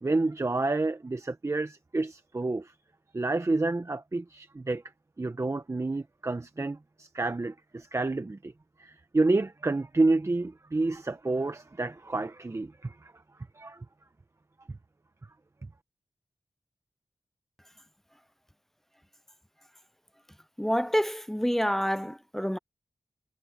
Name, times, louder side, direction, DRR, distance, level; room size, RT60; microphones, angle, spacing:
voice 1, 0.0-2.7 3.1-4.8 5.2-8.5 8.8-13.1 13.5-13.8, right 2 dB, 35° right, 1.2 m, -29 dB
voice 2, 20.6-22.6, equal, 5° left, 0.4 m, -27 dB
cardioid pair, 45°, 8 cm